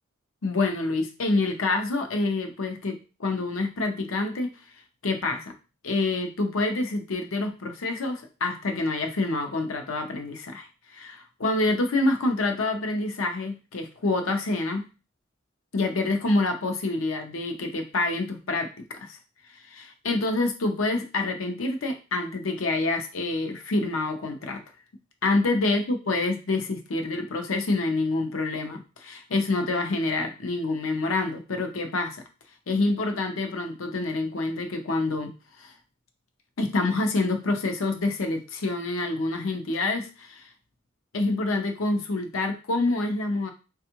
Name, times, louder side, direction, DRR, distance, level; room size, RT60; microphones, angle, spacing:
voice 1, 0.4-4.5 5.0-5.5 5.8-10.7 10.9-14.8 15.7-19.2 19.7-24.6 25.2-32.2 32.7-35.3 35.6-35.7 36.6-40.5 41.1-43.5, left 2 dB, 85° left, 5 dB, 0.7 m, -27 dB
3.5 x 2.3 x 2.8 m, 0.32 s
head